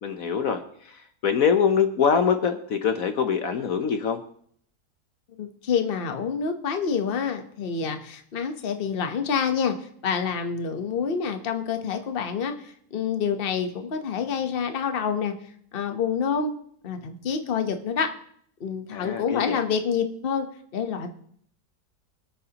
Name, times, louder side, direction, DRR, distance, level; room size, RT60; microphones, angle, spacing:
voice 1, 0.0-4.2 18.9-19.6, left 6 dB, 60° left, 7 dB, 1.2 m, -24 dB
voice 2, 5.4-9.8 10.0-15.3 15.7-16.5 16.8-18.1 18.6-20.5 20.7-21.1, left 6 dB, 40° left, 6 dB, 1.1 m, -27 dB
25.5 x 8.9 x 2.9 m, 0.63 s
omnidirectional pair, 1.7 m